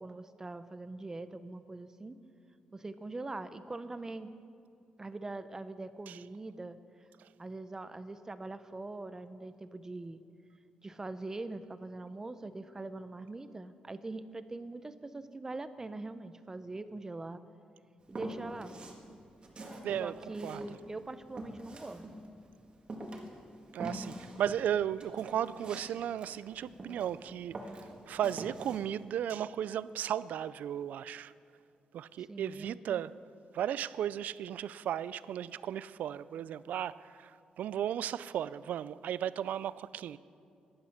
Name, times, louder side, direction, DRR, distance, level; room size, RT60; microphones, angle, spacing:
voice 1, 0.0-2.2 2.7-4.3 5.0-6.8 7.4-10.2 10.8-17.4 18.1-18.8 20.0-22.1 32.3-33.0, right 2 dB, 20° right, 0.6 m, -42 dB
Walk footsteps, 18.1-19.0 19.4-22.5 22.9-27.2 27.5-28.8, right 1 dB, 35° right, 1.8 m, -44 dB
voice 2, 19.8-20.1 20.4-20.6 23.7-27.6 28.1-31.3 31.9-33.1 33.5-40.2, right 10 dB, 80° right, 0.3 m, -35 dB
15.0 x 11.0 x 5.8 m
cardioid pair, 115°, 3 cm